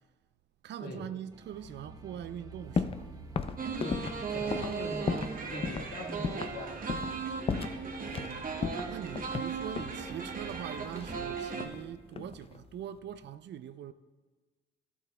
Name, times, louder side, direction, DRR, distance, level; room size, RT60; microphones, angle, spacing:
voice 1, 0.6-3.1 8.2-8.5 8.9-13.9, right 10 dB, 60° right, 0.4 m, -42 dB
sound 1, 1.3-13.3, right 3 dB, 20° right, 0.7 m, -50 dB
sound 2, 2.8-3.1 3.4-5.4 5.6-5.9 6.2-6.6 6.9-7.2 7.5-8.3 8.6-10.0 10.9-11.8 12.1-12.6, left 5 dB, 30° left, 0.4 m, -34 dB
sound 3, 3.6-11.7, right 5 dB, 45° right, 0.9 m, -37 dB
voice 2, 3.8-7.3, left 1 dB, 50° left, 1.6 m, -42 dB
12.5 x 8.1 x 2.2 m
cardioid pair, 90°, 20 cm